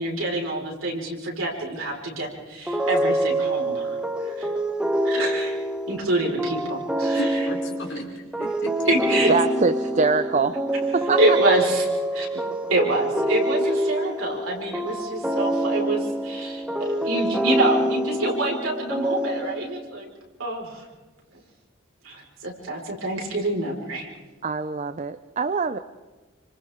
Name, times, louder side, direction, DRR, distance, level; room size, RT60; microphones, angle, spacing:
voice 1, 0.0-4.5 5.0-7.4 8.9-9.3 11.0-11.9 12.1-12.4 12.7-20.1 20.4-20.9 21.3-21.4 22.0-24.1, right 1 dB, 80° right, -2 dB, 5.0 m, -27 dB
sound 1, 2.7-19.8, right 1 dB, 5° right, 1.1 m, -26 dB
voice 2, 7.1-9.2, left 2 dB, 60° left, 0 dB, 3.8 m, -33 dB
voice 3, 9.3-10.6 10.9-11.4 24.4-25.8, right 4 dB, 35° right, 12 dB, 0.6 m, -23 dB
28.5 x 25.5 x 3.7 m, 1.3 s
head